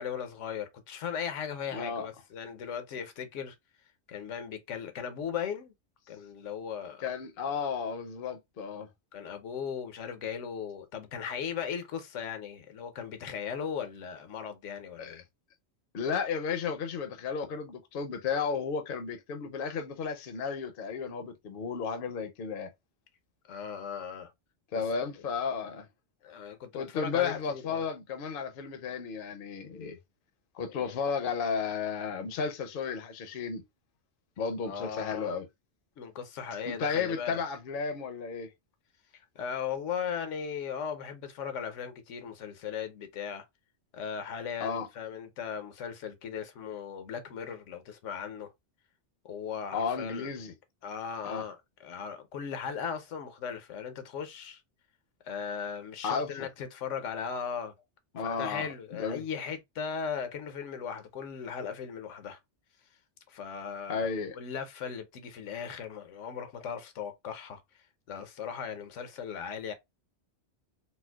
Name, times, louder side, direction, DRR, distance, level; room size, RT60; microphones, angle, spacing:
voice 1, 0.0-3.5 4.1-5.7 6.1-7.0 9.1-15.2 23.5-24.3 24.7-24.8 26.2-27.8 30.8-31.0 34.6-35.4 36.0-37.4 39.1-43.4 43.9-48.5 49.2-50.3 50.8-54.6 55.2-57.7 58.2-62.4 63.3-64.1 64.3-67.6 68.1-69.7, left 7 dB, 85° left, 1.0 m, -37 dB
voice 2, 1.7-2.1 7.0-8.9 15.0-15.1 15.9-22.7 24.7-25.9 26.7-30.0 30.5-33.6 34.4-35.5 36.7-38.5 44.6-44.9 49.7-50.5 51.2-51.4 56.0-56.5 58.1-59.2 63.9-64.4, left 6 dB, 60° left, 0.7 m, -33 dB
4.3 x 2.0 x 2.2 m
omnidirectional pair, 1.2 m